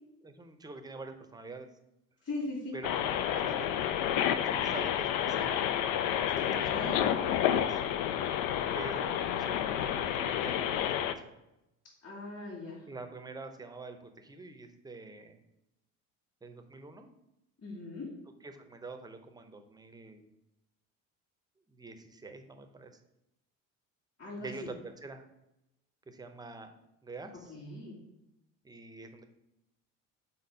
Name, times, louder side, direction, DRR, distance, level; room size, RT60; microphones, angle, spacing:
voice 1, 0.2-1.7 2.7-3.7 4.1-5.7 6.3-7.8 8.7-11.3 12.9-15.4 16.4-17.1 18.4-20.3 21.7-23.0 24.4-25.3 26.1-26.7 27.0-27.5 28.6-29.2, right 3 dB, 10° right, 7 dB, 0.6 m, -46 dB
voice 2, 2.2-2.7 6.4-7.2 12.0-12.9 17.6-18.1 24.2-24.7 27.5-28.0, left 2 dB, 40° left, -6 dB, 2.2 m, -40 dB
sound 1, 2.8-11.1, left 10 dB, 80° left, 0.5 m, -30 dB
4.2 x 4.2 x 5.3 m, 0.89 s
cardioid pair, 110°, 33 cm